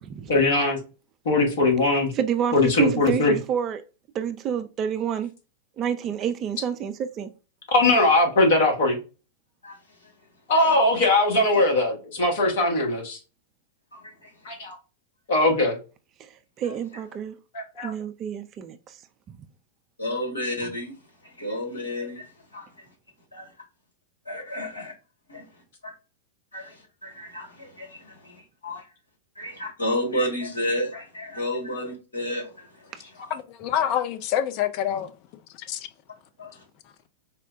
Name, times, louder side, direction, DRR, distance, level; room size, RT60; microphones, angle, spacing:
voice 1, 0.3-0.8 1.2-2.1 2.5-3.3 7.7-9.0 10.5-13.2 14.4-14.8 15.3-15.8 17.5-17.9, left 2 dB, 60° left, 1.1 m, -20 dB
voice 2, 2.1-3.8 4.1-5.3 5.8-7.3 16.2-17.4 17.8-19.0 19.3-19.4 32.9-33.0, right 8 dB, 30° right, 0.3 m, -28 dB
voice 3, 20.0-20.9 21.4-22.2 22.5-22.7 23.3-23.5 24.3-24.9 25.3-25.4 26.5-26.7 27.0-27.9 28.6-28.8 29.4-32.5 36.4-36.5, left 1 dB, 80° left, 1.4 m, -30 dB
voice 4, 33.3-35.1 35.7-35.9, left 10 dB, 45° left, 0.4 m, -26 dB
4.3 x 2.1 x 2.5 m
figure-of-eight pair, 95°, 0 cm